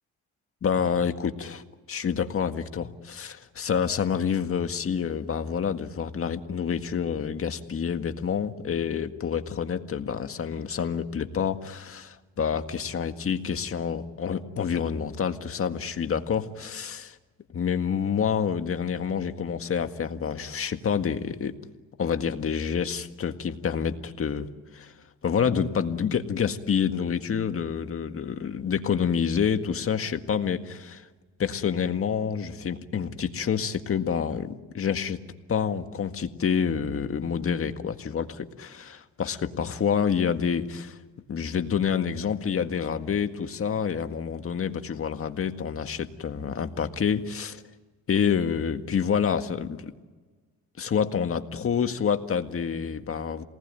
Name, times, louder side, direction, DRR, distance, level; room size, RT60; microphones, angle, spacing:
voice 1, 0.6-1.6 1.9-17.2 17.5-21.6 22.0-24.5 24.7-24.9 25.2-31.1 31.4-35.2 35.5-41.0 41.3-47.6 48.1-49.9 50.8-53.4, left 7 dB, 45° left, 7 dB, 1.9 m, -28 dB
27.5 x 19.5 x 9.0 m, 1.3 s
cardioid pair, 90°, 30 cm